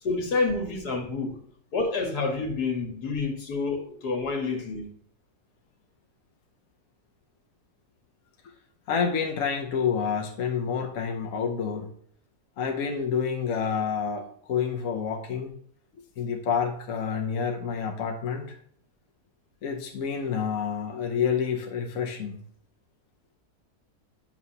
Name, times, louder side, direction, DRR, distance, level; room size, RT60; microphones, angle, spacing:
voice 1, 0.0-1.4 1.7-4.9, left 3 dB, 80° left, 1.9 m, -28 dB
voice 2, 8.9-11.9 12.6-15.5 16.2-18.6 19.6-22.4, left 6 dB, 60° left, 1.1 m, -28 dB
9.3 x 5.8 x 2.7 m
omnidirectional pair, 1.7 m